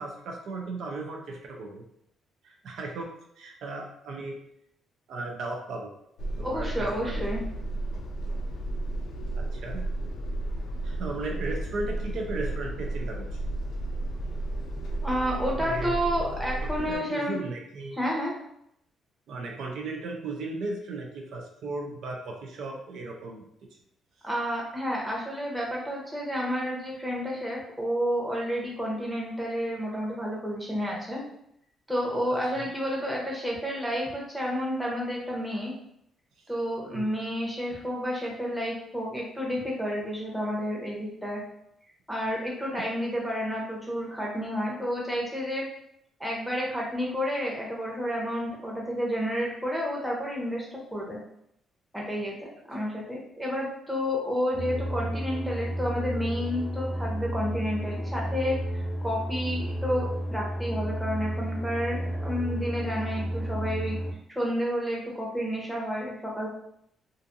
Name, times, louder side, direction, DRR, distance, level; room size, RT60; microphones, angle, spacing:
voice 1, 0.0-1.8 2.4-3.1 3.4-4.4 5.1-5.9 6.4-7.2 9.3-9.8 10.8-13.3 15.6-15.9 16.9-18.0 19.3-23.4 32.6-32.7 36.9-37.1, right 3 dB, 75° right, 0 dB, 0.5 m, -36 dB
sound 1, 6.2-17.0, right 2 dB, 75° left, 0.4 m, -33 dB
voice 2, 6.4-7.4 15.0-17.4 17.9-18.3 24.2-31.2 31.9-35.7 36.5-41.4 42.1-45.6 46.2-51.2 51.9-64.0 64.3-66.5, equal, 5° right, -3 dB, 0.8 m, -30 dB
sound 2, 54.5-64.1, right 1 dB, 30° left, 0.6 m, -32 dB
2.5 x 2.4 x 2.6 m, 0.74 s
cardioid pair, 90°, 0 cm